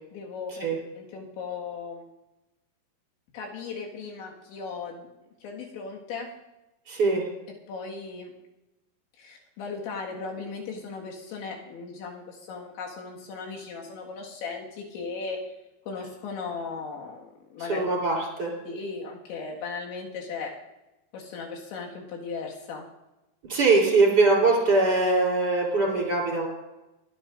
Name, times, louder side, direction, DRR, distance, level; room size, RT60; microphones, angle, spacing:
voice 1, 0.1-0.7 1.0-2.1 3.3-5.1 5.4-6.3 7.7-8.3 9.2-15.4 15.9-17.8 18.6-20.5 21.1-22.8, left 4 dB, 70° left, -1 dB, 3.9 m, -37 dB
voice 2, 6.9-7.3 17.7-18.5 23.5-26.5, right 3 dB, 25° right, -2 dB, 3.4 m, -22 dB
28.0 x 10.5 x 2.6 m, 0.98 s
omnidirectional pair, 5.8 m